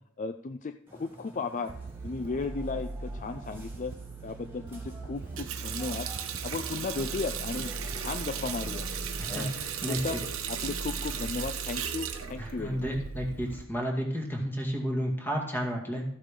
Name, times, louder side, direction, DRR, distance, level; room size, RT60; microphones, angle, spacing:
voice 1, 0.2-1.7 2.0-3.9 4.2-6.1 6.4-7.7 8.0-8.9 9.3-9.5 9.9-12.9, left 4 dB, 35° left, 9 dB, 0.4 m, -35 dB
Burping eructation, 0.9-11.5, equal, 10° right, 2.7 m, -48 dB
sound 1, 1.7-13.6, right 3 dB, 45° right, 0.5 m, -41 dB
Water tap faucet, 5.2-13.6, right 8 dB, 70° right, 1.1 m, -37 dB
voice 2, 9.2-10.0 12.4-16.0, equal, 10° left, 0 dB, 2.1 m, -32 dB
14.0 x 8.3 x 3.8 m, 0.68 s
head